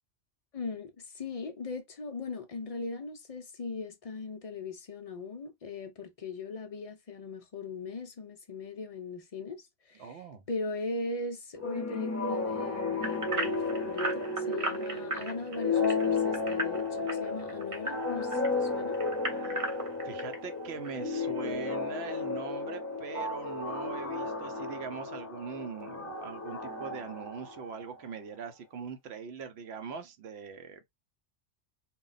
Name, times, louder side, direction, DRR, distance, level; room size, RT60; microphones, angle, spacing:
voice 1, 0.5-19.0, left 3 dB, 60° left, 0.3 m, -39 dB
voice 2, 10.0-10.4 19.3-19.8 20.0-30.9, right 5 dB, 65° right, 0.8 m, -42 dB
sound 1, 11.6-28.0, left 3 dB, 15° left, 0.6 m, -33 dB
sound 2, 13.0-18.5 18.9-20.4 20.8-21.0 21.5-21.6, right 2 dB, 35° right, 0.6 m, -35 dB
2.2 x 2.2 x 3.8 m
omnidirectional pair, 1.2 m